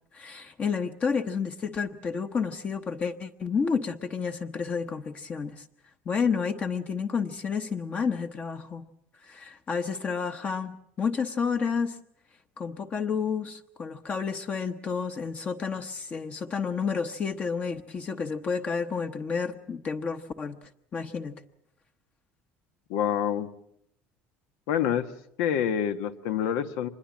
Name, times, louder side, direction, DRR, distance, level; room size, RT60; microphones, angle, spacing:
voice 1, 0.1-5.6 6.1-8.8 9.2-12.0 12.6-20.6 20.9-21.4, left 5 dB, 25° left, 7 dB, 0.9 m, -30 dB
voice 2, 22.9-23.5 24.7-25.1 25.4-26.9, left 9 dB, 85° left, 9 dB, 1.5 m, -27 dB
25.5 x 21.0 x 7.3 m, 0.72 s
cardioid pair, 160°, 5 cm